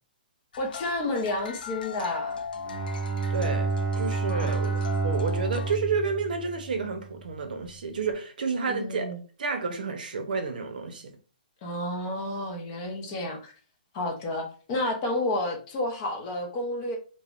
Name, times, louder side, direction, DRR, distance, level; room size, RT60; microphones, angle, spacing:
sound 1, 0.5-5.8, left 6 dB, 70° left, 0.3 m, -38 dB
voice 1, 0.6-2.4 4.3-4.6 8.7-9.2 11.6-13.5 13.9-17.0, left 1 dB, 20° left, 0.6 m, -31 dB
Bowed string instrument, 2.6-7.1, right 4 dB, 25° right, 0.4 m, -29 dB
voice 2, 3.3-9.1 9.4-11.1, right 4 dB, 65° right, 0.6 m, -30 dB
3.2 x 2.1 x 2.4 m
hypercardioid pair, 170°, 5 cm